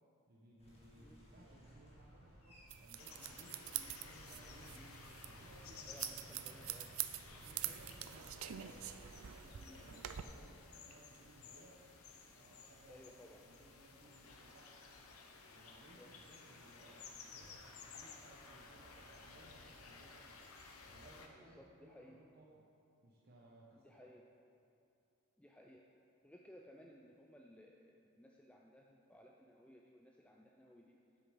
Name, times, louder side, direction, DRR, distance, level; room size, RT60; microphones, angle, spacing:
voice 1, 0.3-3.6 4.0-4.8 5.2-6.6 7.3-8.6 9.0-11.8 12.3-14.8 15.5-20.4 20.9-22.6 23.0-24.1, right 1 dB, 50° right, -4 dB, 1.0 m, -63 dB
sound 1, 0.6-9.1, right 1 dB, 30° left, 1.6 m, -60 dB
sound 2, 2.7-10.2, right 12 dB, 75° right, 0.4 m, -46 dB
sound 3, 3.0-21.3, left 4 dB, 90° left, 0.9 m, -56 dB
voice 2, 5.8-6.9 7.6-7.8 9.5-10.0 12.9-13.4 15.9-16.1 21.3-22.2 23.7-24.2 25.4-25.9 26.2-31.0, left 1 dB, 5° left, -1 dB, 0.4 m, -60 dB
7.9 x 6.7 x 5.7 m, 2.5 s
head